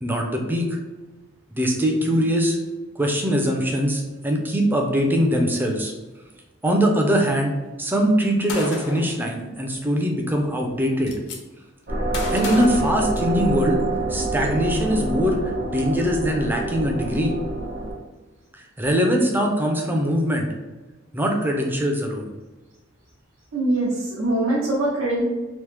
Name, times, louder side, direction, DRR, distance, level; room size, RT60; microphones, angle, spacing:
voice 1, 0.0-0.8 1.5-2.6 3.0-5.9 6.6-11.1 12.3-13.8 14.1-17.3 18.5-20.5 21.1-22.3, equal, 10° right, 1 dB, 0.4 m, -22 dB
Gunshot gunfire, 8.5-9.1 10.3-10.4 10.7-11.4 12.1-13.6, left 3 dB, 60° left, 0.5 m, -33 dB
sound 1, 11.9-17.9, right 2 dB, 60° right, 1.1 m, -27 dB
voice 2, 23.5-25.2, right 1 dB, 85° right, -6 dB, 0.7 m, -23 dB
2.9 x 2.0 x 3.3 m, 1.2 s
head